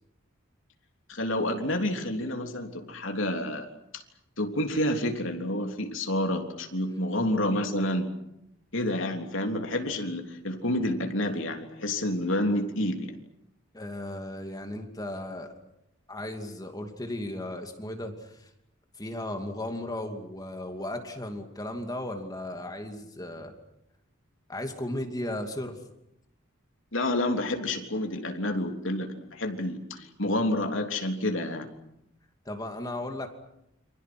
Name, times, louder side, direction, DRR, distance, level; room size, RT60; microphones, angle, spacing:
voice 1, 1.1-4.0 4.4-8.1 8.7-13.1 26.9-31.7, left 1 dB, 65° left, 4 dB, 3.4 m, -29 dB
voice 2, 13.7-15.5 16.1-18.5 19.0-23.5 24.5-25.8 32.4-33.3, left 1 dB, 20° left, 5 dB, 2.6 m, -35 dB
29.5 x 25.5 x 6.1 m, 0.81 s
head